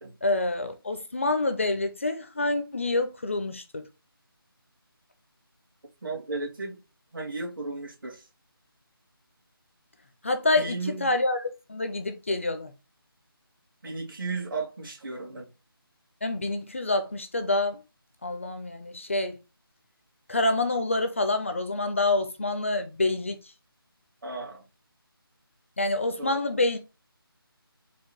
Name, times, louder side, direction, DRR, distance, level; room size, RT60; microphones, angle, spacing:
voice 1, 0.2-3.8 10.2-12.7 16.2-17.8 18.2-19.4 20.3-23.4 25.8-26.8, left 2 dB, 30° left, 0.4 m, -27 dB
voice 2, 6.0-6.8 7.1-8.2 10.6-11.1 13.8-15.5 24.2-24.6 26.2-26.4, right 3 dB, 60° right, 2.0 m, -34 dB
4.5 x 2.2 x 4.3 m
figure-of-eight pair, 170°, 13 cm